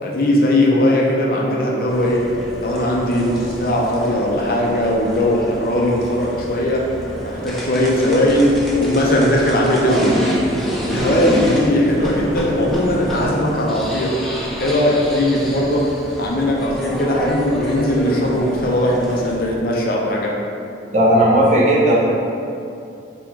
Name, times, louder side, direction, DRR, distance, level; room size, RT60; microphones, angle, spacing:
voice 1, 0.0-2.2 2.6-6.8 7.2-8.5 8.8-10.3 10.9-14.1 14.6-15.8 16.2-20.3, left 1 dB, 50° left, -2 dB, 0.5 m, -18 dB
sound 1, 1.9-19.3, equal, ahead, 0.6 m, -27 dB
voice 2, 20.9-22.0, right 1 dB, 40° right, -7 dB, 0.9 m, -14 dB
3.6 x 3.0 x 4.5 m, 2.6 s
head